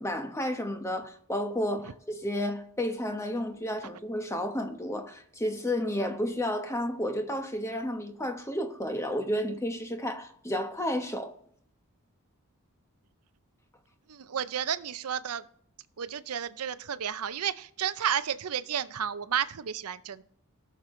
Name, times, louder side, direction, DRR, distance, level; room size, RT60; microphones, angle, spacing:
voice 1, 0.0-11.3, left 1 dB, 15° left, 1.1 m, -31 dB
voice 2, 14.1-15.4 16.0-20.2, right 8 dB, 85° right, 0.6 m, -32 dB
18.5 x 6.6 x 3.2 m
head